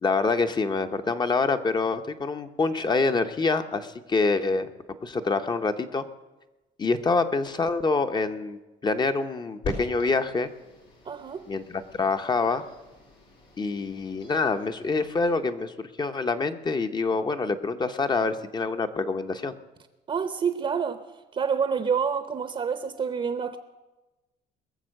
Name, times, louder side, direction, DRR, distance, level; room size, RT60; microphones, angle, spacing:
voice 1, 0.0-4.7 5.0-6.0 6.8-10.5 11.5-12.6 13.6-19.5, left 3 dB, 25° left, 0.8 m, -26 dB
sound 1, 9.6-15.3, left 2 dB, 90° left, 4.8 m, -43 dB
voice 2, 11.1-11.4 20.1-21.0 21.3-23.6, right 6 dB, 35° right, 0.8 m, -27 dB
21.0 x 7.1 x 6.5 m
cardioid pair, 110°, 17 cm